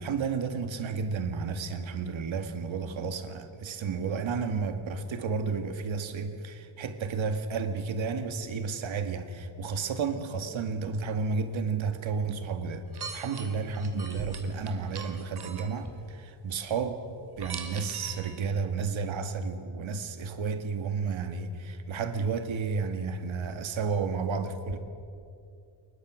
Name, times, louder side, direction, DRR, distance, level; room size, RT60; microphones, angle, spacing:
voice 1, 0.0-12.8 13.1-24.8, right 5 dB, 70° right, 2.0 m, -32 dB
sound 1, 12.9-15.9 17.4-18.4, right 5 dB, 50° right, 2.9 m, -41 dB
29.5 x 23.5 x 6.4 m
wide cardioid pair, 155°, 49 cm